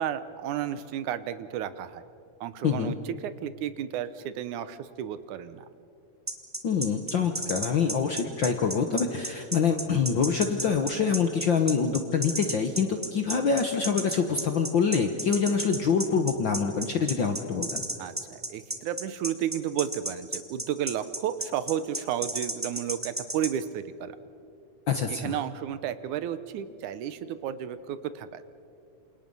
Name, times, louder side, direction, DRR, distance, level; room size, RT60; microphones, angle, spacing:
voice 1, 0.0-2.0 2.4-5.7 18.0-24.2 25.1-28.4, right 10 dB, 75° right, 13 dB, 2.2 m, -32 dB
voice 2, 2.6-2.9 6.6-17.8 24.9-25.4, left 6 dB, 60° left, 6 dB, 1.2 m, -25 dB
sound 1, 6.3-23.5, right 1 dB, 5° right, 1.3 m, -32 dB
28.0 x 28.0 x 5.5 m, 2.6 s
omnidirectional pair, 3.6 m